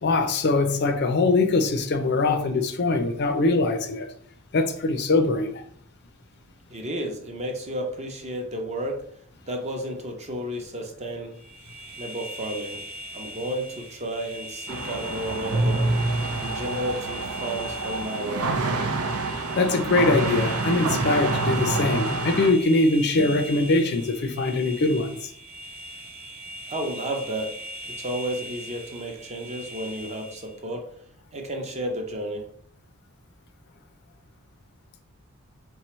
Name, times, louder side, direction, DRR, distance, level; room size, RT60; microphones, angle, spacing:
voice 1, 0.0-4.1 4.5-5.6 19.5-25.3, left 3 dB, 50° left, 0.5 m, -22 dB
voice 2, 6.7-9.0 9.5-11.3 12.0-12.8 13.1-15.8 16.4-18.5 26.7-27.5 27.8-30.9 31.3-32.4, right 1 dB, 30° right, 0.7 m, -32 dB
sound 1, 11.3-30.6, right 1 dB, 65° right, 0.9 m, -40 dB
sound 2, 14.7-22.5, right 3 dB, 85° right, 0.6 m, -27 dB
4.6 x 3.3 x 3.0 m
head